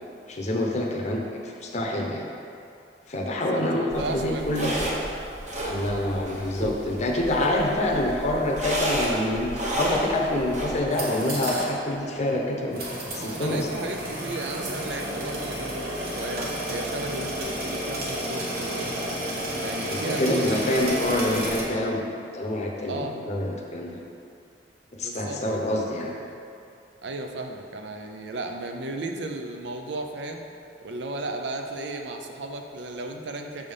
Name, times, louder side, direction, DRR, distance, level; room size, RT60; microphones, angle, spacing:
voice 1, 0.3-2.3 3.1-4.9 5.6-12.8 13.1-13.7 19.9-22.0 22.3-24.0 24.9-26.1, left 1 dB, 40° left, -1 dB, 0.7 m, -27 dB
voice 2, 3.3-4.8 13.1-19.0 19.5-21.2 22.9-23.1 25.0-25.4 25.7-26.4 27.0-30.4 30.8-33.7, right 2 dB, 75° right, 4 dB, 0.6 m, -35 dB
sound 1, 3.9-10.8, right 1 dB, 45° right, 1.0 m, -31 dB
sound 2, 10.9-11.7 12.0-12.1 12.7-21.6, equal, 60° right, 1.2 m, -31 dB
6.7 x 3.5 x 5.4 m, 2.5 s
head